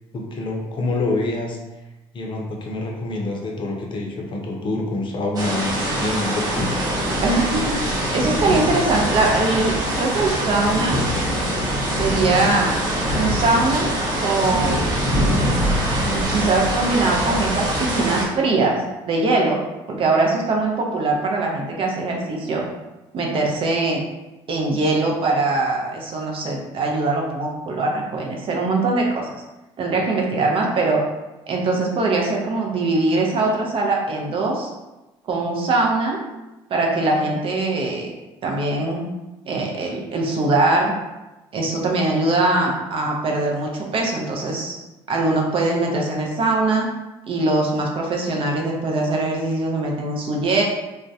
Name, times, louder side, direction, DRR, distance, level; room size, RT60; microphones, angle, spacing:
voice 1, 0.1-1.6 2.1-6.7, left 2 dB, 40° left, 0 dB, 0.5 m, -26 dB
sound 1, 5.4-18.3, equal, 35° right, 0.9 m, -23 dB
voice 2, 7.2-11.0 11.9-12.8 13.1-13.9 14.2-15.0 16.0-18.8 19.1-19.6 19.9-22.6 23.1-24.0 24.5-29.4 29.8-31.0 31.5-34.7 35.3-36.2 36.7-38.1 38.4-39.1 39.5-40.9 41.5-44.7 45.1-46.9 47.3-50.6, right 2 dB, 50° right, 0 dB, 0.5 m, -22 dB
2.2 x 2.1 x 2.6 m, 1.0 s
supercardioid pair, 80°, 12 cm